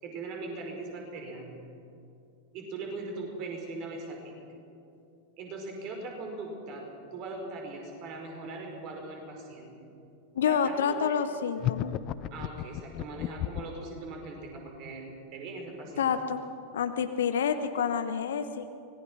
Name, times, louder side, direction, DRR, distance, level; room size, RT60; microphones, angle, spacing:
voice 1, 0.0-1.6 2.5-4.5 5.4-9.7 10.4-11.1 12.3-16.1, right 3 dB, 40° right, 2 dB, 5.0 m, -40 dB
voice 2, 10.3-11.9 16.0-16.4 16.7-18.7, left 7 dB, 60° left, 9 dB, 0.9 m, -28 dB
sound 1, 11.6-13.8, left 14 dB, 35° left, 0.7 m, -32 dB
25.0 x 19.5 x 6.2 m, 2.7 s
figure-of-eight pair, 90°, 0 cm